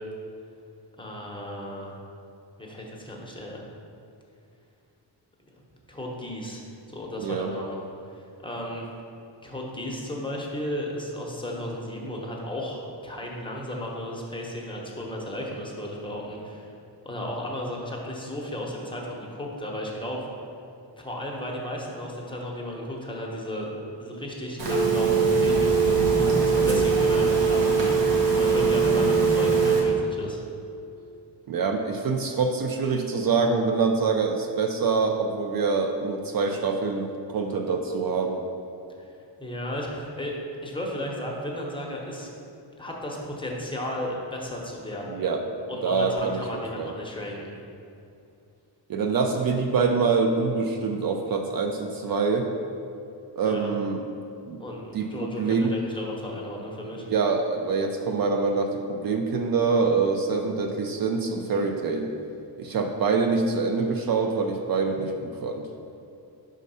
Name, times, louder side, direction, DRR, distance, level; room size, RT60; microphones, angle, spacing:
voice 1, 1.0-2.0 2.6-3.6 5.6-6.6 6.9-8.8 9.4-16.7 17.0-20.3 21.0-23.7 24.0-27.7 28.3-30.4 39.0-39.1 39.4-40.4 40.6-42.3 42.8-45.2 45.7-47.5 53.4-53.7 54.6-57.0, left 1 dB, 10° left, -2 dB, 0.7 m, -34 dB
voice 2, 7.2-7.5 26.6-26.8 31.5-38.4 45.0-45.4 45.8-46.9 48.9-52.5 53.4-54.0 54.5-54.6 54.9-55.7 57.1-62.1 62.6-65.7, right 4 dB, 55° right, 4 dB, 0.5 m, -25 dB
Telephone, 24.6-29.8, right 5 dB, 80° right, 1.3 m, -21 dB
5.3 x 3.7 x 5.4 m, 2.6 s
wide cardioid pair, 135°, 43 cm